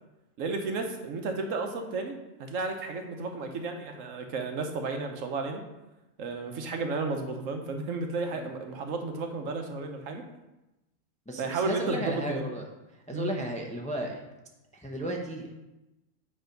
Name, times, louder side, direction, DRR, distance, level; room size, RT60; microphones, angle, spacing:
voice 1, 0.4-5.6 6.2-10.2 11.4-12.4 13.1-13.3, right 3 dB, 80° right, 4 dB, 1.2 m, -33 dB
voice 2, 11.3-12.6 12.9-14.2 14.7-15.5, right 1 dB, 10° left, 1 dB, 0.5 m, -34 dB
8.0 x 3.4 x 5.1 m, 1.0 s
omnidirectional pair, 1.3 m